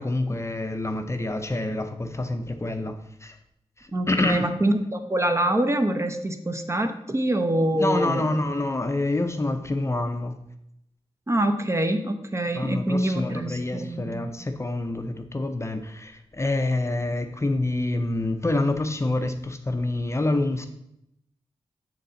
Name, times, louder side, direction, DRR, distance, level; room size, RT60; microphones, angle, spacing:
voice 1, 0.0-3.4 3.8-4.5 7.7-10.4 12.5-20.7, left 2 dB, 25° left, 6 dB, 0.5 m, -27 dB
voice 2, 3.9-8.3 11.3-14.3, right 1 dB, 25° right, 6 dB, 0.7 m, -25 dB
6.6 x 4.0 x 3.9 m, 0.79 s
wide cardioid pair, 70°, 11 cm